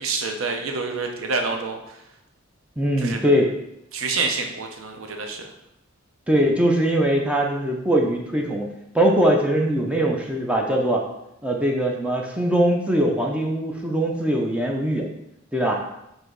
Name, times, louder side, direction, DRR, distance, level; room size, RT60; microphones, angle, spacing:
voice 1, 0.0-2.0 3.0-3.2 3.9-5.4, right 4 dB, 85° right, 4 dB, 0.6 m, -27 dB
voice 2, 2.8-3.5 6.3-8.7 8.9-11.0 11.4-15.1 15.5-15.8, right 1 dB, 5° right, 0 dB, 0.4 m, -21 dB
4.7 x 2.6 x 3.8 m, 0.83 s
head